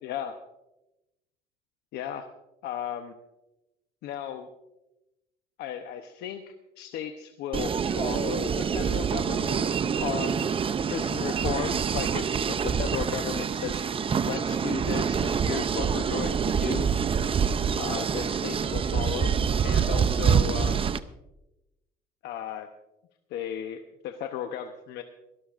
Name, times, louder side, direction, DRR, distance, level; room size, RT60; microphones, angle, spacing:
voice 1, 0.0-0.4 1.9-2.3 2.6-3.1 4.0-4.5 5.6-6.4 6.8-10.5 10.9-13.8 14.2-16.9 17.8-19.3 19.6-20.9 22.2-22.7 23.3-25.0, left 9 dB, 80° left, 6 dB, 0.9 m, -35 dB
sound 1, 7.5-21.0, right 7 dB, 30° right, 0.6 m, -26 dB
25.5 x 12.5 x 2.5 m, 0.94 s
cardioid pair, 110°, 17 cm